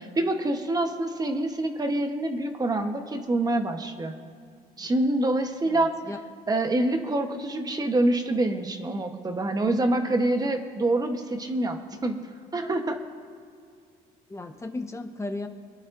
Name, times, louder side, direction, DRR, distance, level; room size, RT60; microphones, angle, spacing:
voice 1, 0.0-4.1 4.8-5.9 6.5-12.2 12.5-13.0, right 2 dB, 20° right, 5 dB, 1.1 m, -26 dB
voice 2, 5.6-6.2 14.3-15.5, left 2 dB, 15° left, 5 dB, 1.0 m, -35 dB
26.5 x 10.5 x 2.6 m, 2.3 s
cardioid pair, 110°, 17 cm